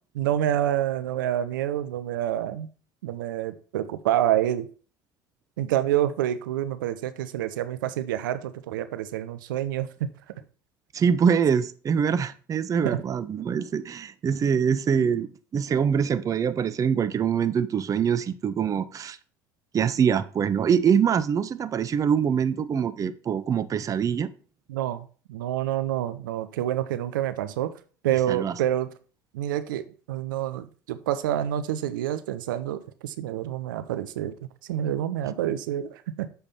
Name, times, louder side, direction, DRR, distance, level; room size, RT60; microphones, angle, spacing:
voice 1, 0.1-2.7 3.0-4.7 5.6-10.1 12.8-13.0 24.7-27.7 28.0-28.9 29.3-34.3 34.6-36.3, right 11 dB, 80° right, 0.5 m, -27 dB
voice 2, 10.9-19.2 19.7-24.3 28.3-28.5, right 7 dB, 30° right, 0.5 m, -24 dB
6.9 x 3.5 x 5.5 m
hypercardioid pair, 70°, 11 cm